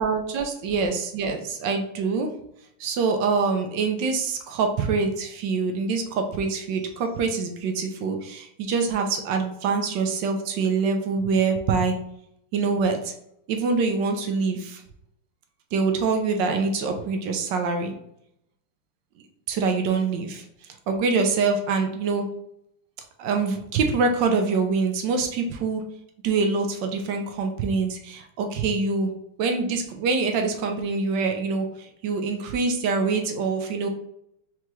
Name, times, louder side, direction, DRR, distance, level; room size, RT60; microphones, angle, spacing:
voice 1, 0.0-2.3 2.8-12.0 12.5-13.1 13.5-14.8 15.7-17.9 19.5-20.4 20.9-22.3 23.2-25.8 26.2-29.1 29.4-33.9, right 4 dB, 70° right, 5 dB, 1.2 m, -25 dB
4.6 x 3.5 x 3.0 m, 0.74 s
omnidirectional pair, 2.4 m